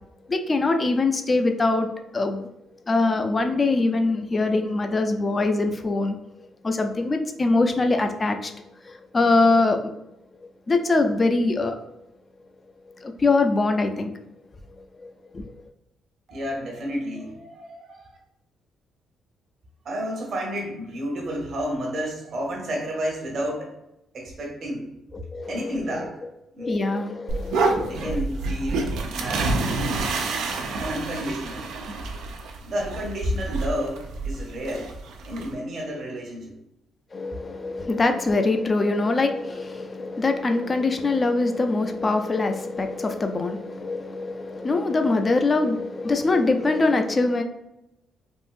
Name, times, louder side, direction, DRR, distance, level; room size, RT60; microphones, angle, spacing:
voice 1, 0.3-2.5 2.9-6.2 6.6-8.5 8.9-9.9 10.7-11.7 13.0-14.1 15.0-15.4 25.1-25.7 26.6-28.2 37.1-47.4, left 3 dB, 30° left, 6 dB, 0.4 m, -23 dB
voice 2, 16.3-18.2 19.8-23.8 24.1-24.9 25.5-26.2 26.5-26.8 27.8-29.9 30.8-31.7 32.6-34.9 35.3-36.5, equal, 60° right, -1 dB, 0.9 m, -31 dB
sound 1, 27.3-35.5, right 3 dB, 85° right, 0.4 m, -28 dB
3.6 x 2.5 x 2.5 m, 0.88 s
cardioid pair, 90°, 0 cm